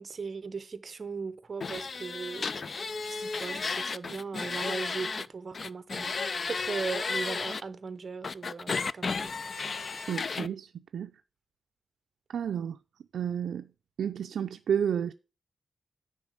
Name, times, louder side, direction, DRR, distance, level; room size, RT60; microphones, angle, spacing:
voice 1, 0.0-9.3, right 4 dB, 40° right, 0.8 m, -38 dB
sound 1, 1.6-5.3 5.5-7.6 8.2-10.5, left 4 dB, 40° left, 0.3 m, -33 dB
voice 2, 10.1-11.1 12.3-12.8 13.1-13.7 14.0-15.1, right 8 dB, 85° right, 0.4 m, -31 dB
9.6 x 3.8 x 6.5 m
wide cardioid pair, 155°, 0 cm